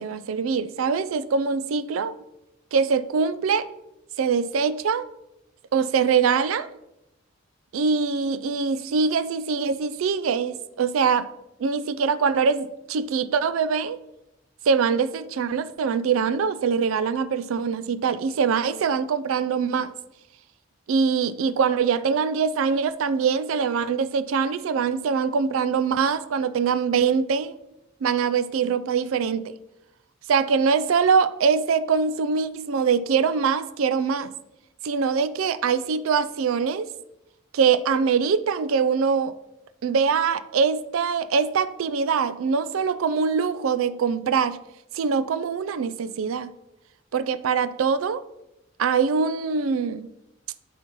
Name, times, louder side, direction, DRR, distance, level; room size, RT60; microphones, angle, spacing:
voice 1, 0.0-2.1 2.7-3.7 4.2-5.1 5.7-6.7 7.7-11.3 11.6-14.0 14.7-19.9 20.9-27.5 28.0-29.4 30.3-34.3 34.8-36.9 37.5-39.3 39.8-44.6 44.9-46.5 47.1-48.2 48.8-50.1, right 6 dB, 85° right, 13 dB, 0.4 m, -23 dB
11.5 x 4.1 x 3.0 m, 0.87 s
head